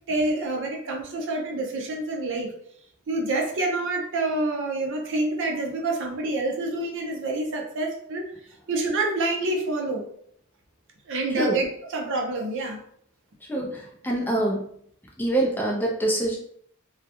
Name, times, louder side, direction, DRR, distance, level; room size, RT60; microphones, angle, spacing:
voice 1, 0.1-2.5 3.1-8.3 8.7-10.1 11.1-12.8, right 2 dB, 60° right, 1 dB, 0.5 m, -27 dB
voice 2, 13.5-14.6 15.2-16.4, right 1 dB, 10° left, -1 dB, 0.3 m, -25 dB
2.2 x 2.0 x 2.8 m, 0.64 s
head